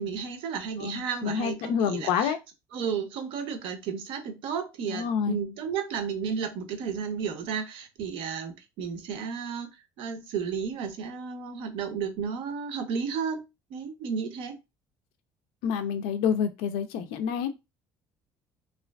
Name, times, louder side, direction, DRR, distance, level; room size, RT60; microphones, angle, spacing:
voice 1, 0.0-2.3 2.7-9.7 10.0-13.4 13.7-14.6, right 6 dB, 70° right, 0.6 m, -33 dB
voice 2, 0.8-2.4 4.9-5.4 15.6-17.5, left 7 dB, 90° left, 0.4 m, -28 dB
2.4 x 2.3 x 2.2 m
cardioid pair, 125°, 9 cm